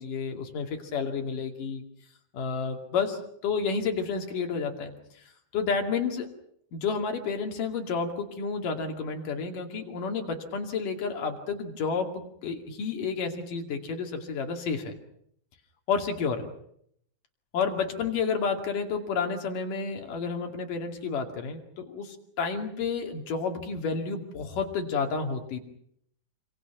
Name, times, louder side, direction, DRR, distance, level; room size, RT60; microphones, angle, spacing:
voice 1, 0.0-1.8 2.3-4.9 5.5-6.3 6.7-14.9 15.9-16.4 17.5-25.6, left 5 dB, 60° left, 4 dB, 3.8 m, -30 dB
26.5 x 26.0 x 6.0 m, 0.70 s
omnidirectional pair, 4.5 m